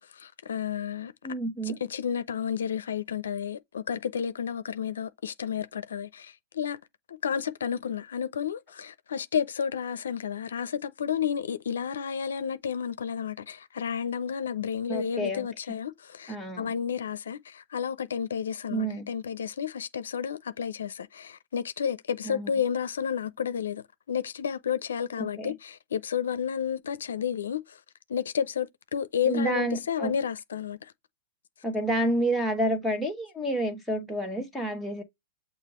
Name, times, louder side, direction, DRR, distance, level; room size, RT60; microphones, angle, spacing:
voice 1, 0.0-1.1 1.9-6.8 7.1-27.8 28.1-30.9, left 8 dB, 85° left, 0.5 m, -31 dB
voice 2, 1.2-1.8 14.9-15.5 16.3-16.7 18.7-19.1 22.2-22.5 25.2-25.5 29.2-30.2 31.6-35.0, right 1 dB, ahead, 1.2 m, -29 dB
6.6 x 2.5 x 3.0 m
hypercardioid pair, 135°, 0 cm